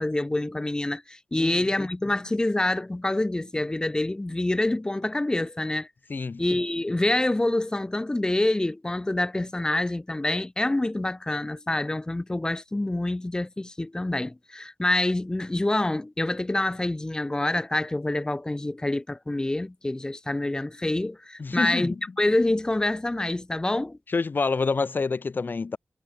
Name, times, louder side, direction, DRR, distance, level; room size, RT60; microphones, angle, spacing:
voice 1, 0.0-5.9 6.4-24.0, left 2 dB, 15° left, 0.5 m, -26 dB
voice 2, 6.1-6.4 21.4-22.0 24.1-25.8, left 4 dB, 45° left, 2.3 m, -27 dB
cardioid pair, 70°, 5 cm